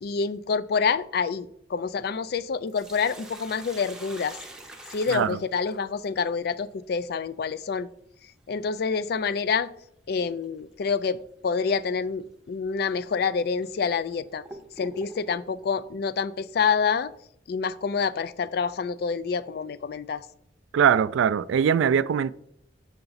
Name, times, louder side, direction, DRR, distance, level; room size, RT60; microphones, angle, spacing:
voice 1, 0.0-4.4 4.9-7.9 8.5-9.7 10.1-11.2 11.4-14.4 14.8-17.1 17.5-20.2, left 5 dB, 55° left, 0.3 m, -27 dB
Sink (filling or washing), 2.4-6.1 8.5-8.6 10.4-10.6 11.1-11.2 12.0-12.2 12.9-13.0 13.6-15.5, right 1 dB, 5° right, 0.6 m, -45 dB
voice 2, 20.7-22.3, right 7 dB, 80° right, 0.3 m, -21 dB
6.6 x 5.8 x 4.0 m
head